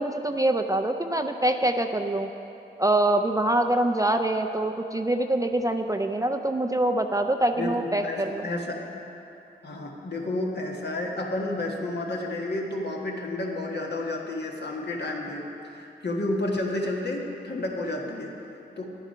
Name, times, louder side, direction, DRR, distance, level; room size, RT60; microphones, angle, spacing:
voice 1, 0.0-2.3 2.8-8.4, right 1 dB, 15° right, 6 dB, 0.5 m, -25 dB
voice 2, 7.6-8.8 9.6-18.3 18.8-18.9, left 2 dB, 60° left, -1 dB, 1.6 m, -31 dB
10.5 x 8.8 x 5.6 m, 2.8 s
cardioid pair, 65°, 20 cm